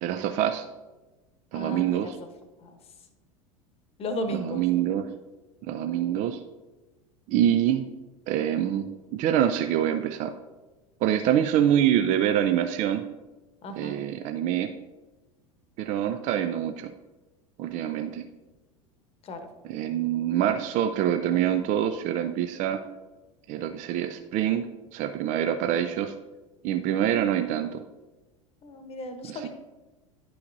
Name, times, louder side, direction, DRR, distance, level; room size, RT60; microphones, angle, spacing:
voice 1, 0.0-0.7 1.5-2.2 4.3-5.1 5.6-6.4 7.3-7.8 8.3-10.3 11.0-13.0 13.8-14.7 15.8-16.9 17.6-18.2 19.6-22.8 23.5-24.7 24.9-26.1 26.6-27.8 29.2-29.5, right 10 dB, 45° right, 8 dB, 0.5 m, -25 dB
voice 2, 1.5-2.1 2.6-2.7 4.0-4.6 13.6-14.0 19.2-19.4 28.6-29.5, equal, 35° left, 7 dB, 1.0 m, -34 dB
10.0 x 5.6 x 2.6 m, 1.1 s
figure-of-eight pair, 80°, 18 cm